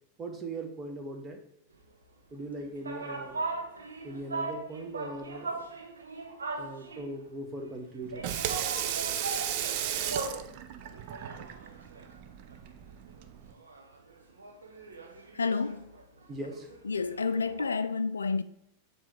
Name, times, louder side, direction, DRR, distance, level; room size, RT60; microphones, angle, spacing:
voice 1, 0.2-1.4 2.3-3.5 4.0-5.7 6.6-8.3 16.3-16.7, right 2 dB, 20° right, 1.1 m, -40 dB
sound 1, 2.4-7.2 8.1-10.5 10.8-12.7 13.1-13.2 13.5-17.7, right 3 dB, 75° right, 0.9 m, -39 dB
Water tap faucet / Sink (filling or washing), 8.0-13.5, right 10 dB, 45° right, 0.5 m, -35 dB
voice 2, 15.3-15.9 16.8-18.4, left 4 dB, 75° left, 0.3 m, -30 dB
7.3 x 3.1 x 4.9 m
figure-of-eight pair, 90°, 0 cm